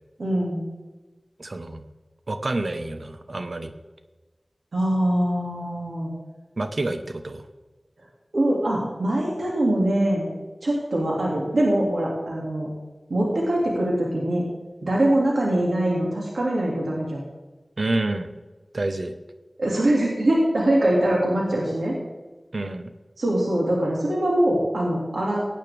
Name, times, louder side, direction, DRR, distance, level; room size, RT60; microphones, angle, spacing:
voice 1, 0.2-0.6 4.7-6.1 8.3-10.3 10.6-12.7 13.1-14.4 14.8-17.2 19.6-21.9 23.2-25.5, right 1 dB, 85° right, -3 dB, 2.3 m, -23 dB
voice 2, 1.4-1.8 2.3-3.7 6.6-7.4 17.8-18.3 18.7-19.1 22.5-22.9, right 2 dB, 65° right, 8 dB, 1.0 m, -28 dB
16.5 x 9.0 x 3.5 m, 1.2 s
wide cardioid pair, 40°, 0 cm